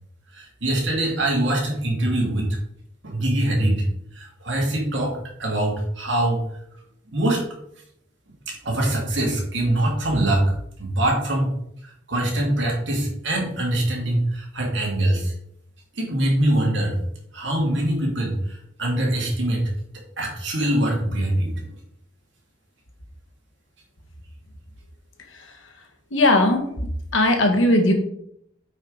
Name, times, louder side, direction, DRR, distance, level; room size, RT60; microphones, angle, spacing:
voice 1, 0.3-2.5 3.0-3.8 4.2-5.1 5.4-6.4 7.1-7.4 8.5-10.4 10.8-11.5 12.1-15.3 16.0-16.9 17.3-19.6 20.2-21.6, right 1 dB, 70° right, -1 dB, 2.7 m, -23 dB
voice 2, 26.1-26.7 27.1-27.9, left 1 dB, 85° left, 3 dB, 1.7 m, -18 dB
9.0 x 5.4 x 4.0 m, 0.73 s
head